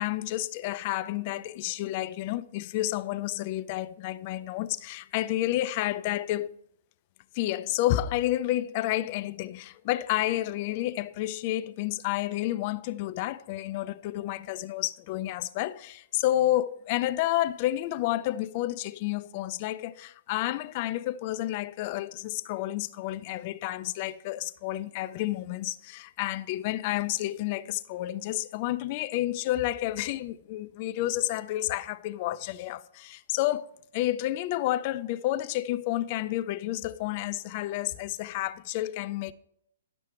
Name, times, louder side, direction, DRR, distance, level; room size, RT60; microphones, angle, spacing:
voice 1, 0.0-6.5 7.3-33.7 33.9-39.3, left 15 dB, 40° left, 0.5 m, -30 dB
11.0 x 6.1 x 4.5 m
hypercardioid pair, 145°, 0 cm